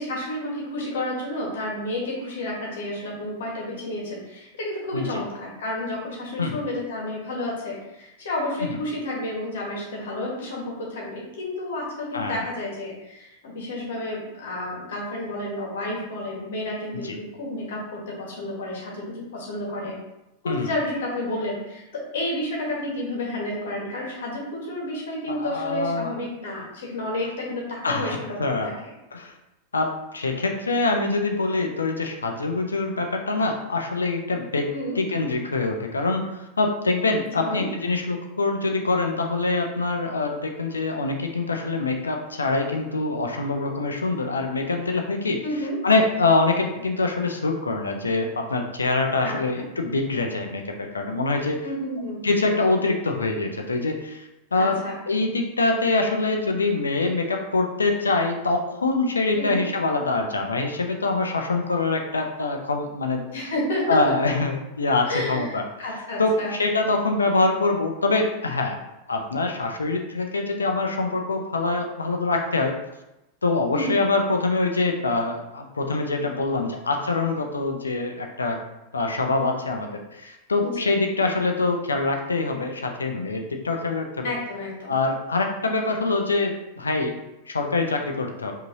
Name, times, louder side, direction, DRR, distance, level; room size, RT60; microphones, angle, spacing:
voice 1, 0.0-20.0 20.4-28.4 28.6-28.9 34.7-35.0 37.4-37.7 45.4-45.8 49.2-49.7 51.6-52.3 54.6-55.0 59.3-59.6 63.3-64.0 65.1-66.5 73.7-74.0 80.6-81.0 84.2-85.0, left 1 dB, 60° left, -2 dB, 1.4 m, -31 dB
voice 2, 12.1-12.5 16.9-17.2 20.5-20.7 25.3-26.1 27.8-28.7 29.1-29.3 29.7-34.7 35.0-45.4 45.8-51.6 52.2-63.5 63.9-65.6 66.2-68.8 69.1-72.8 73.4-78.6 78.9-84.3 84.9-87.2 87.5-88.5, left 3 dB, 75° left, 3 dB, 0.5 m, -24 dB
5.2 x 2.8 x 2.7 m, 0.93 s
figure-of-eight pair, 90°, 0 cm